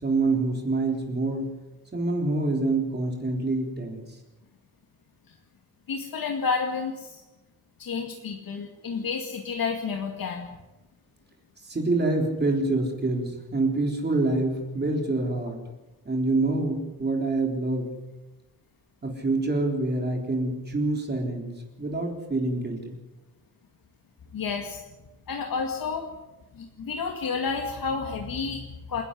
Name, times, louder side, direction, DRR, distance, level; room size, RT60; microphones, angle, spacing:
voice 1, 0.0-1.5 1.9-4.2 11.6-15.6 16.1-17.9 19.0-21.5 21.8-23.0, right 2 dB, 25° right, 1 dB, 3.8 m, -26 dB
voice 2, 5.9-7.2 7.8-10.5 24.3-24.8 25.3-26.1 26.5-29.0, left 5 dB, 70° left, 3 dB, 2.3 m, -30 dB
27.5 x 11.5 x 10.0 m, 1.0 s
wide cardioid pair, 170°, 36 cm